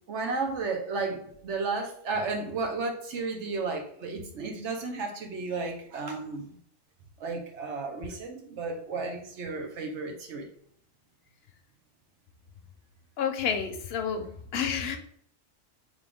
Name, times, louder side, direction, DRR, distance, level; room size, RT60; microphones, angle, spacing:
voice 1, 0.1-6.5 7.2-10.5, right 3 dB, 80° right, 2 dB, 1.2 m, -33 dB
voice 2, 13.2-14.3 14.5-15.0, left 7 dB, 65° left, 6 dB, 0.8 m, -29 dB
4.1 x 3.2 x 3.4 m, 0.64 s
omnidirectional pair, 1.2 m